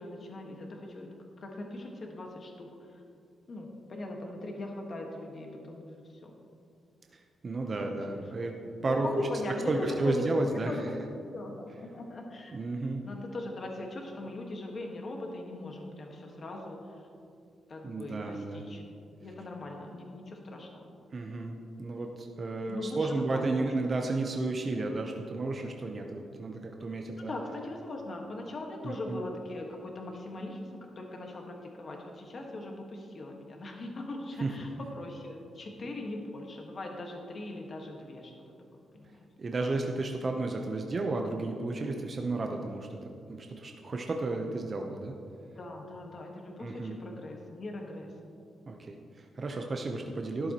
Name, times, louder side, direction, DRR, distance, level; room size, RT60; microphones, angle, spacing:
voice 1, 0.0-2.9 3.5-6.3 7.8-8.5 8.8-10.9 11.2-12.6 13.0-17.0 17.7-18.8 19.2-20.9 22.7-23.4 27.3-34.7 34.9-38.3 38.9-39.3 45.5-48.1, left 2 dB, 40° left, 1 dB, 1.5 m, -40 dB
voice 2, 7.4-8.5 8.8-9.1 9.7-10.8 12.5-13.0 17.8-18.6 21.1-27.3 28.8-29.2 34.4-34.5 39.4-43.0 43.3-45.1 46.6-47.0 48.7-50.5, right 2 dB, 35° right, 2 dB, 0.7 m, -32 dB
12.5 x 11.0 x 3.0 m, 2.5 s
cardioid pair, 135°, 0 cm